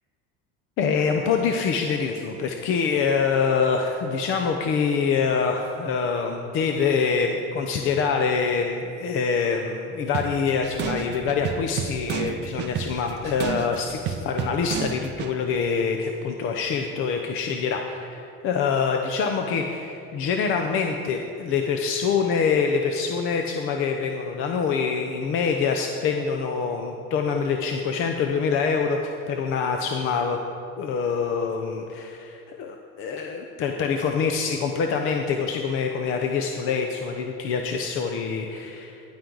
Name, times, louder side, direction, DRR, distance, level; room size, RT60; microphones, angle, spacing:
voice 1, 0.8-30.4 30.8-39.0, left 5 dB, 40° left, 4 dB, 0.7 m, -25 dB
sound 1, 10.1-15.4, right 7 dB, 35° right, 0.5 m, -31 dB
14.0 x 10.5 x 3.9 m, 2.7 s
cardioid pair, 170°, 32 cm